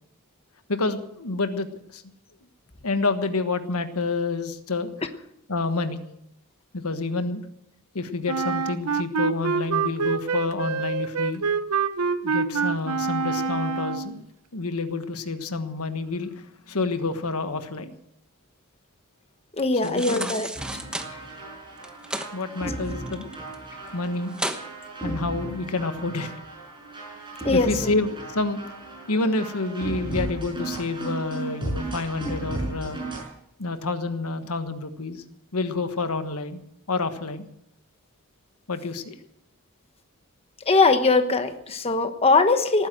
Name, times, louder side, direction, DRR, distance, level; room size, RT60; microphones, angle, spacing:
voice 1, 0.7-2.0 2.8-4.9 5.5-6.0 6.7-7.4 7.9-11.4 12.2-14.2 14.5-17.9 19.8-20.3 22.3-23.3 23.9-24.4 25.0-26.3 27.5-28.6 29.1-33.0 33.6-35.2 35.5-36.6 36.9-37.5 38.7-39.1, left 3 dB, 80° left, 9 dB, 1.4 m, -28 dB
Wind instrument woodwind instrument, 8.3-14.2, right 5 dB, 90° right, 0.8 m, -26 dB
voice 2, 19.6-20.5 27.4-27.7 40.7-42.9, left 3 dB, 25° left, 8 dB, 1.1 m, -20 dB
sound 1, 19.8-21.1 21.8-22.3 22.7-23.5 23.9-24.0 24.3-24.6 25.1-25.2, right 1 dB, 5° right, 1.1 m, -32 dB
sound 2, 20.6-33.3, right 2 dB, 20° right, 6.2 m, -35 dB
18.5 x 9.8 x 7.7 m, 0.80 s
head